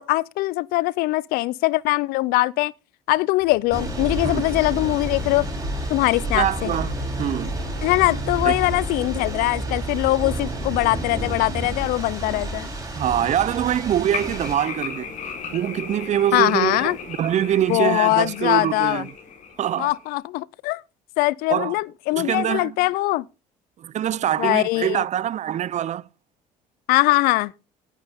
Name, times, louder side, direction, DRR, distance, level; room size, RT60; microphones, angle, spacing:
voice 1, 0.0-2.7 3.1-5.5 5.9-6.7 7.8-12.7 16.3-17.0 17.7-19.0 19.8-20.8 21.2-23.2 24.4-25.0 26.9-27.5, left 20 dB, 75° left, 0.5 m, -22 dB
sound 1, 3.4-10.6, right 1 dB, 65° right, 3.8 m, -35 dB
Thunder / Rain, 3.7-14.6, right 1 dB, 20° right, 6.8 m, -30 dB
voice 2, 6.3-7.6 8.4-8.5 13.0-15.1 15.5-19.1 19.6-19.9 21.5-21.7 22.1-22.8 23.8-26.0, right 11 dB, 50° right, 0.6 m, -24 dB
sound 2, 14.1-20.1, left 6 dB, 55° left, 3.8 m, -36 dB
16.5 x 9.4 x 3.6 m
supercardioid pair, 75°, 15 cm